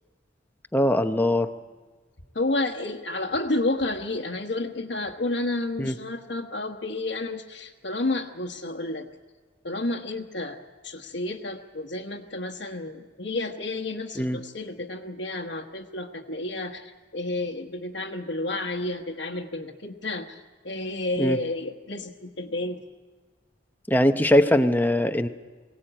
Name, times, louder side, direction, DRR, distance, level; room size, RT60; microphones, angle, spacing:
voice 1, 0.7-1.5 5.8-5.9 14.2-14.4 21.2-21.4 23.9-25.3, left 1 dB, 10° left, 7 dB, 0.8 m, -21 dB
voice 2, 2.3-9.1 9.6-10.6 10.8-22.8, left 2 dB, 70° left, 1 dB, 1.2 m, -31 dB
23.0 x 17.5 x 8.9 m, 1.4 s
head